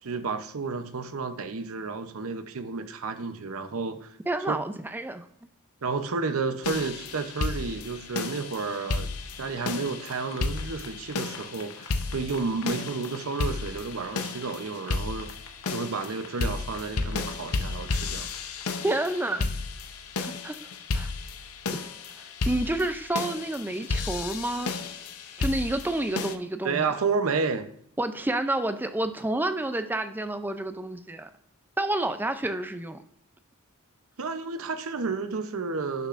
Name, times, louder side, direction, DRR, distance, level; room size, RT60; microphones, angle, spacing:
voice 1, 0.0-4.2 4.5-4.6 5.8-9.1 9.4-15.3 15.7-18.3 26.6-27.7 34.2-36.1, right 4 dB, 70° right, 0.7 m, -31 dB
voice 2, 4.3-5.3 18.8-19.5 20.2-20.6 20.9-21.1 22.2-24.7 25.4-26.9 28.0-31.3 31.8-33.0, right 1 dB, 10° right, 0.4 m, -29 dB
sound 1, 6.6-26.3, left 4 dB, 80° left, 0.6 m, -33 dB
sound 2, 9.6-19.2, left 4 dB, 65° left, 1.3 m, -49 dB
11.5 x 6.7 x 2.5 m
head